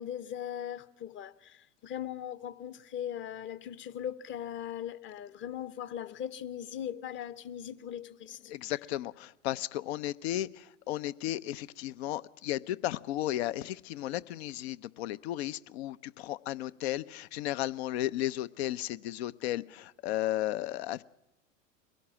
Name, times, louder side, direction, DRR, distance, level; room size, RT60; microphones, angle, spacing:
voice 1, 0.0-8.4, left 10 dB, 30° left, 0.9 m, -39 dB
voice 2, 8.5-21.0, left 14 dB, 55° left, 0.7 m, -34 dB
22.5 x 17.0 x 7.5 m
figure-of-eight pair, 90°, 39 cm